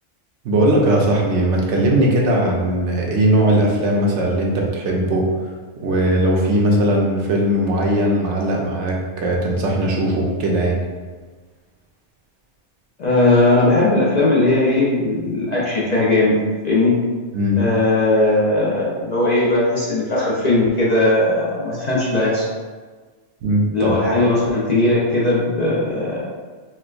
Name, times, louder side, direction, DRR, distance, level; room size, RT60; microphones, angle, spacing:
voice 1, 0.4-5.5 5.8-10.8 17.3-17.6 23.4-24.1, right 1 dB, 75° right, -1 dB, 0.9 m, -19 dB
voice 2, 13.0-16.4 16.6-16.9 17.6-22.4 23.7-26.2, left 2 dB, 50° left, -7 dB, 0.6 m, -18 dB
4.3 x 2.1 x 2.4 m, 1.4 s
omnidirectional pair, 1.2 m